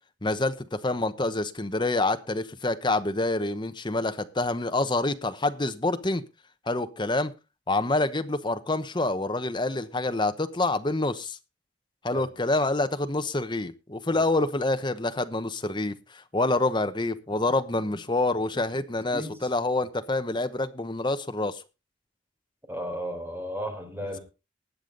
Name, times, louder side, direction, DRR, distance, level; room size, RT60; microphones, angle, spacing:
voice 1, 0.2-6.2 6.7-7.3 7.7-11.4 12.0-21.6, left 2 dB, 25° left, 10 dB, 1.0 m, -27 dB
voice 2, 22.7-24.2, equal, 10° right, 4 dB, 3.9 m, -34 dB
19.5 x 7.0 x 3.9 m, 0.29 s
head